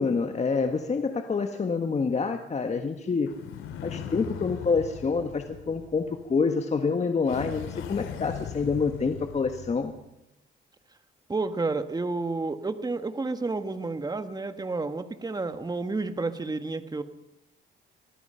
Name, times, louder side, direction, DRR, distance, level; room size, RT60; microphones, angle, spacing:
voice 1, 0.0-3.3 3.8-10.0, left 4 dB, 35° left, 6 dB, 1.7 m, -27 dB
sound 1, 3.3-6.3 7.2-10.0, left 8 dB, 85° left, 2.8 m, -39 dB
voice 2, 11.3-17.0, right 3 dB, 20° right, 9 dB, 1.7 m, -30 dB
25.5 x 19.5 x 5.8 m, 0.89 s
cardioid pair, 90°, 20 cm